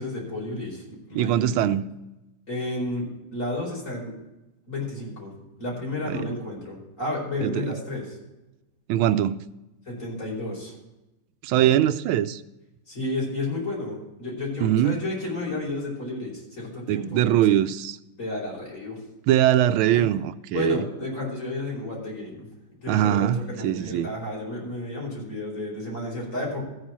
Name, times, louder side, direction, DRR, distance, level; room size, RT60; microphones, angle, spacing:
voice 1, 0.0-1.7 2.5-3.1 3.3-4.1 4.7-5.3 5.6-8.2 9.9-10.7 11.5-11.7 12.9-17.2 18.2-19.0 19.9-20.1 20.5-22.5 22.8-26.6, left 2 dB, 40° left, 5.4 m, -32 dB
voice 2, 1.1-1.9 6.1-6.3 7.4-7.7 8.9-9.5 11.4-12.4 14.6-15.0 16.9-18.0 19.3-20.9 22.9-24.2, right 11 dB, 85° right, 1.4 m, -22 dB
14.5 x 4.9 x 7.4 m
omnidirectional pair, 2.2 m